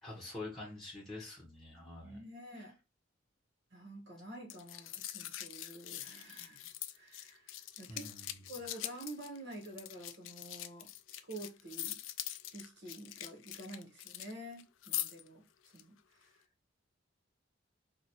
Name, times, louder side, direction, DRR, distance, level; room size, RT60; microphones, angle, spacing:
voice 1, 0.0-2.2 7.9-8.4, left 2 dB, ahead, 1.0 m, -46 dB
voice 2, 2.0-2.7 3.7-6.7 6.9-8.1 8.5-12.0 12.5-15.4 15.7-16.3, right 1 dB, 65° right, 1.2 m, -49 dB
sound 1, 4.5-14.3 14.6-15.3 15.7-15.8, left 13 dB, 85° left, 0.3 m, -43 dB
3.0 x 2.3 x 4.1 m
head